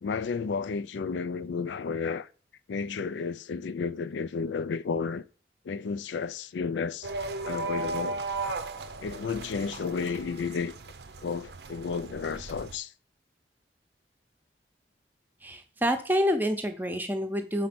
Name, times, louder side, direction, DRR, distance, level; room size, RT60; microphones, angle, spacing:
voice 1, 0.0-2.3 2.7-5.2 5.7-7.1 7.4-8.2 9.0-10.7 11.2-12.9, left 5 dB, 90° left, 0.4 m, -32 dB
sound 1, 7.0-12.8, right 3 dB, 70° right, 0.6 m, -36 dB
voice 2, 15.4-17.7, equal, 10° right, 0.7 m, -27 dB
5.3 x 4.3 x 6.0 m
head